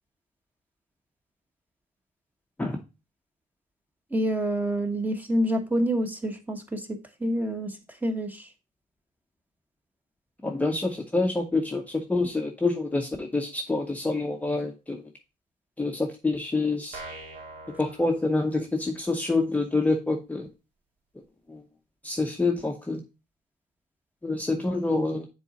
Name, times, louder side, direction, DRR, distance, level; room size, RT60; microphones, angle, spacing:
voice 1, 4.1-7.7 8.0-8.4, equal, 10° right, 1.1 m, -27 dB
voice 2, 10.4-15.0 15.8-17.0 17.8-20.5 21.5-21.6 22.0-23.0 24.2-25.3, left 3 dB, 10° left, 0.7 m, -27 dB
sound 1, 16.9-18.9, right 2 dB, 60° right, 2.2 m, -43 dB
6.9 x 3.9 x 3.9 m
cardioid pair, 100°, 17 cm